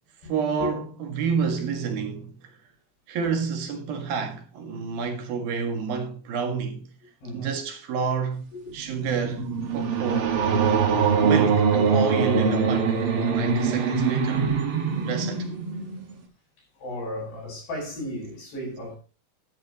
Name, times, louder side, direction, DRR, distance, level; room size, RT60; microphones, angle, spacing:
voice 1, 0.2-2.4 3.1-6.8 7.3-8.5 8.7-10.5 11.2-14.5 15.0-15.5, right 6 dB, 65° right, 3.5 m, -29 dB
voice 2, 7.2-7.5 8.5-8.7 10.8-10.9 13.9-15.1 16.8-19.0, left 1 dB, 75° left, 9.8 m, -35 dB
sound 1, 8.8-16.1, right 5 dB, 50° right, 1.7 m, -23 dB
13.5 x 10.5 x 3.0 m
omnidirectional pair, 4.7 m